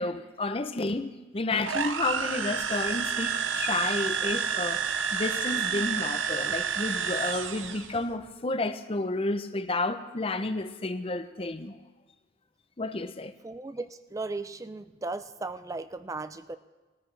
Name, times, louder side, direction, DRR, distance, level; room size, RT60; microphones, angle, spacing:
voice 1, 0.0-11.8 12.8-13.3, left 2 dB, 30° left, 0.6 m, -31 dB
sound 1, 1.6-8.0, right 7 dB, 80° right, 0.7 m, -30 dB
voice 2, 13.4-16.6, right 3 dB, 15° right, 0.4 m, -36 dB
20.0 x 13.5 x 3.3 m
head